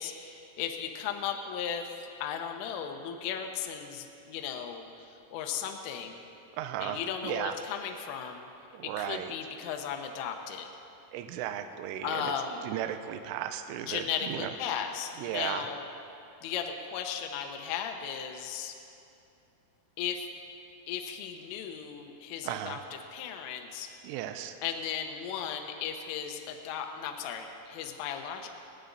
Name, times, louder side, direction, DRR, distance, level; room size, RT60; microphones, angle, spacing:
voice 1, 0.0-1.8 2.2-6.2 6.8-8.5 8.8-10.7 12.0-12.6 13.9-15.8 16.4-18.7 20.0-20.3 20.9-22.8 23.1-23.9 24.6-28.5, left 8 dB, 80° left, 4 dB, 3.4 m, -36 dB
voice 2, 6.6-7.6 8.7-9.3 11.1-12.3 12.6-14.5 15.2-15.7 22.4-22.8 24.0-24.6, right 11 dB, 85° right, 8 dB, 3.1 m, -35 dB
26.0 x 9.2 x 4.0 m, 2.6 s
omnidirectional pair, 5.8 m